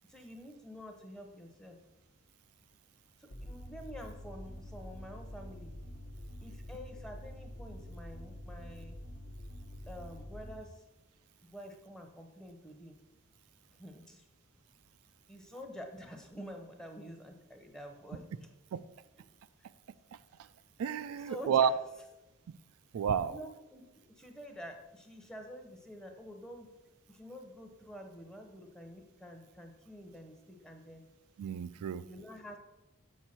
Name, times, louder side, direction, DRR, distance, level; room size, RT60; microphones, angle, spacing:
voice 1, 0.1-1.8 3.2-5.7 6.4-9.0 9.9-10.8 11.4-13.0 13.8-14.2 15.3-18.3 21.2-21.7 23.2-26.7 27.1-31.0 32.0-32.6, equal, 5° left, 4 dB, 0.7 m, -48 dB
sound 1, 3.3-10.6, equal, 50° left, 0.8 m, -46 dB
voice 2, 20.8-21.7 22.9-23.4 31.4-32.0, right 8 dB, 90° right, 13 dB, 0.3 m, -30 dB
6.8 x 6.3 x 4.3 m, 0.98 s
head